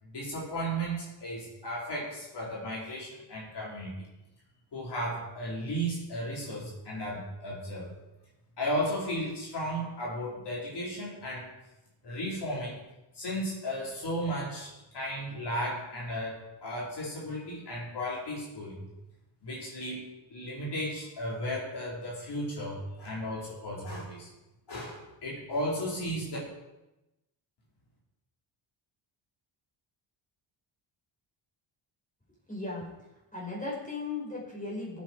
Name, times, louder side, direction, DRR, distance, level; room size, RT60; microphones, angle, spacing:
voice 1, 0.0-4.1 4.7-7.9 8.6-11.5 12.0-12.8 13.1-18.9 19.4-24.3 24.7-26.4, equal, 50° left, -5 dB, 5.2 m, -35 dB
voice 2, 32.5-32.9 33.3-35.0, left 3 dB, 15° left, -5 dB, 5.5 m, -36 dB
15.5 x 9.4 x 4.9 m, 0.97 s
cardioid pair, 80°, 50 cm